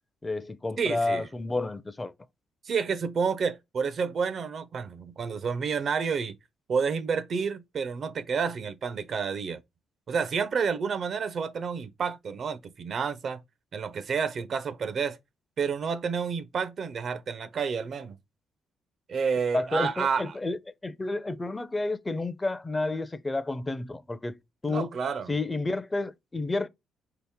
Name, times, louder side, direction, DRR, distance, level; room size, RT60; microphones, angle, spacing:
voice 1, 0.2-2.1 19.5-24.3 24.6-24.9 25.3-26.7, left 2 dB, 20° left, 0.4 m, -30 dB
voice 2, 0.8-1.3 2.7-6.3 6.7-9.6 10.1-13.4 13.7-15.2 15.6-18.2 19.1-20.4 24.7-25.3, right 6 dB, 55° right, 0.4 m, -29 dB
3.9 x 2.8 x 3.5 m
cardioid pair, 90°, 0 cm